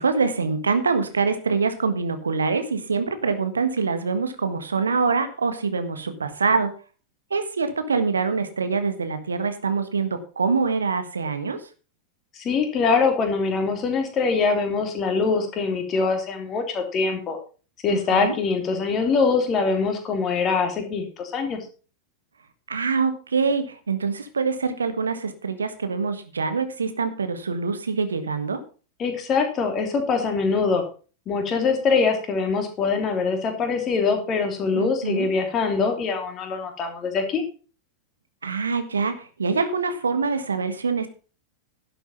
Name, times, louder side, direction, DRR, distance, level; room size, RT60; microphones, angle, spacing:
voice 1, 0.0-6.7 7.3-11.6 17.9-18.4 22.7-28.6 34.7-35.3 38.4-41.1, right 4 dB, 75° right, 9 dB, 1.5 m, -25 dB
voice 2, 12.4-17.4 17.8-21.6 29.0-30.8 31.3-37.4, left 4 dB, 30° left, 4 dB, 3.2 m, -23 dB
11.5 x 7.8 x 5.5 m, 0.36 s
figure-of-eight pair, 90°, 0 cm